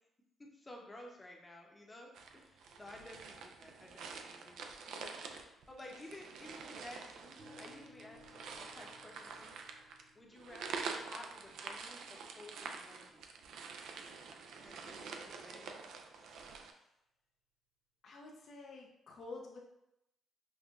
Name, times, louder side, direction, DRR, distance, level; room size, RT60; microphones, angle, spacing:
voice 1, 0.4-4.7 5.3-9.5 10.1-13.2 14.6-15.7, left 1 dB, 20° left, 0 dB, 0.7 m, -54 dB
sound 1, 2.1-16.7, right 5 dB, 80° right, 0.3 m, -47 dB
sound 2, 7.4-15.3, left 2 dB, 35° right, 0.8 m, -64 dB
voice 2, 16.0-16.9 18.0-19.6, left 3 dB, 60° left, -1 dB, 0.5 m, -51 dB
5.3 x 2.2 x 2.4 m, 0.85 s
cardioid pair, 90°, 0 cm